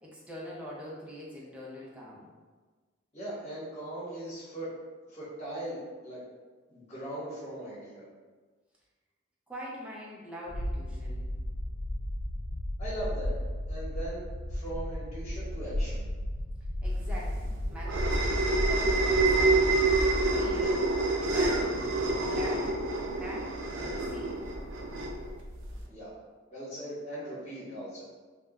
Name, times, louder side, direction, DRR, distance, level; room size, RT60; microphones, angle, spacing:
voice 1, 0.0-2.3 9.5-11.3 16.8-19.9 20.3-20.7 21.2-21.8 22.3-22.8 23.2-23.6 23.9-24.5, equal, 5° right, -6 dB, 0.5 m, -43 dB
voice 2, 3.1-4.7 5.1-6.2 6.7-8.0 12.8-13.3 13.7-16.0 20.4-20.8 25.9-26.2 26.5-28.0, right 1 dB, 35° left, -9 dB, 1.1 m, -39 dB
sound 1, 10.5-20.5, left 1 dB, 60° left, 0.4 m, -35 dB
sound 2, 17.0-25.8, right 2 dB, 75° right, 0.4 m, -27 dB
2.9 x 2.1 x 2.3 m, 1.4 s
head